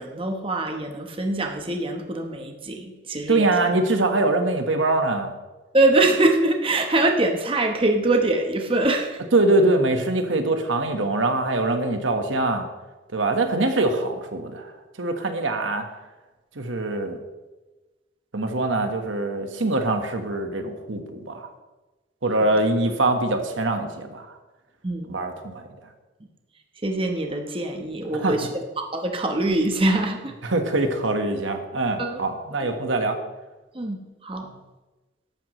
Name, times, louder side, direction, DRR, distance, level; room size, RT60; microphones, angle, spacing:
voice 1, 0.0-3.5 5.7-9.2 24.8-25.2 26.8-28.5 28.8-30.3 32.0-32.2 33.7-34.4, right 2 dB, 30° right, 3 dB, 1.0 m, -23 dB
voice 2, 3.3-5.3 9.3-12.7 13.1-14.7 15.0-15.9 16.5-17.2 18.3-21.5 22.2-24.4 25.1-25.7 28.2-28.4 30.4-33.2 34.4-34.5, right 2 dB, 90° right, 5 dB, 1.4 m, -23 dB
14.0 x 11.5 x 3.1 m, 1.2 s
head